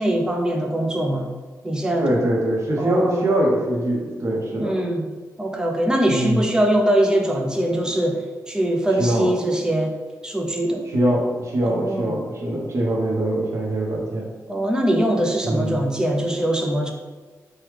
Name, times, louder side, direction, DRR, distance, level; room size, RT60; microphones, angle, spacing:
voice 1, 0.0-1.3 1.6-2.2 2.8-3.2 4.6-5.1 5.4-9.9 10.2-10.8 11.6-12.1 14.5-16.9, right 1 dB, 10° right, 1 dB, 0.4 m, -22 dB
voice 2, 2.0-4.7 6.1-6.4 9.0-9.3 10.9-14.3 15.4-15.8, right 1 dB, 50° right, -2 dB, 0.8 m, -23 dB
3.4 x 2.2 x 3.2 m, 1.4 s
wide cardioid pair, 120°, 6 cm